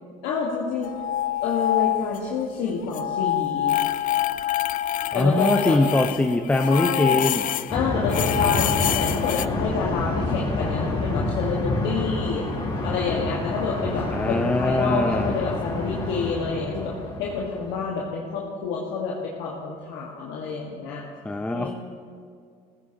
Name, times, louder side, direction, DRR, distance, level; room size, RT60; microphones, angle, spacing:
voice 1, 0.2-0.9 1.4-3.7 5.1-5.8 6.7-7.3 7.7-12.4 12.8-16.9 17.2-21.0 21.5-21.7, left 5 dB, 75° left, -3 dB, 1.6 m, -28 dB
sound 1, 0.8-2.4 2.7-7.7 8.1-9.5, left 12 dB, 50° left, 0.4 m, -26 dB
voice 2, 5.1-7.5 14.1-15.4 21.2-21.7, left 2 dB, 5° left, 7 dB, 0.6 m, -22 dB
sound 2, 7.7-18.0, left 2 dB, 25° left, 3.5 m, -28 dB
15.5 x 14.5 x 2.9 m, 2.2 s
supercardioid pair, 80°, 18 cm